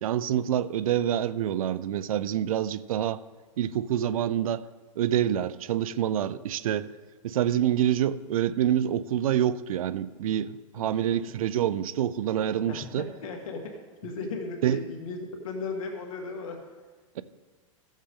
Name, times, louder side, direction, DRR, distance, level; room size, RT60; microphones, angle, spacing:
voice 1, 0.0-3.2 3.6-4.6 5.0-6.9 7.2-13.1 14.6-14.8 17.2-17.3, right 10 dB, 80° right, 0.5 m, -27 dB
voice 2, 10.8-11.3 12.7-13.6 14.0-16.6, left 3 dB, 75° left, 1.9 m, -36 dB
15.0 x 7.3 x 3.8 m
hypercardioid pair, 125°, 18 cm